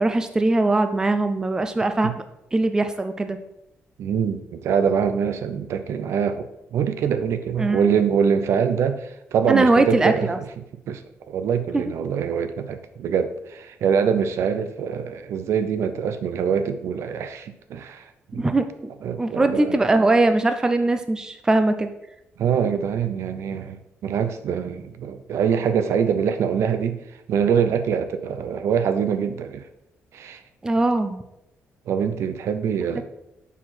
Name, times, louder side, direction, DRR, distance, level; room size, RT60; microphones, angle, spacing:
voice 1, 0.0-2.2 2.5-3.4 7.6-7.9 9.5-10.4 11.7-11.8 18.4-18.9 19.2-21.9 30.6-31.2 32.9-33.0, right 2 dB, 15° right, 8 dB, 0.5 m, -21 dB
voice 2, 4.0-18.4 19.0-19.8 22.4-27.0 27.3-29.7 30.1-30.4 31.9-33.0, right 7 dB, 70° right, 10 dB, 0.7 m, -24 dB
7.1 x 4.7 x 5.9 m, 0.85 s
cardioid pair, 155°, 5 cm